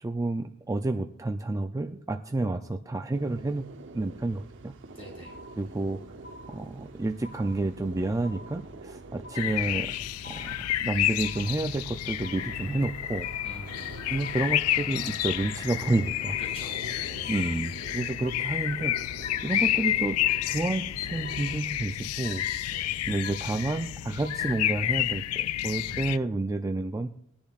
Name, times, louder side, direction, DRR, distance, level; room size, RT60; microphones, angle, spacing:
voice 1, 0.0-3.7 3.9-4.7 5.6-6.0 6.5-9.9 10.2-13.3 14.1-16.4 17.3-19.0 19.4-20.2 20.5-22.4 23.1-27.1, right 2 dB, 15° right, 6 dB, 0.4 m, -30 dB
sound 1, 3.1-21.6, right 3 dB, 60° right, 0.8 m, -46 dB
voice 2, 5.0-5.3 13.4-14.0 16.4-17.3 22.7-23.0 25.9-26.0, equal, 25° left, -3 dB, 5.2 m, -46 dB
sound 2, 5.2-5.9 6.2-6.9 7.2-7.9 8.2-8.9 9.2-9.9 10.2-10.9 11.2-11.9 12.2-12.9 13.2-13.9 14.2-14.9 15.2-15.9 16.2-16.9 17.2-17.9 18.2-18.9 19.2-19.9 20.2-20.9 21.2-21.9 22.2-22.9 23.2-23.9 24.2-24.9, left 1 dB, 55° left, 4.1 m, -49 dB
sound 3, 9.3-26.2, left 13 dB, 90° left, 0.3 m, -30 dB
20.5 x 10.5 x 2.5 m, 0.69 s
head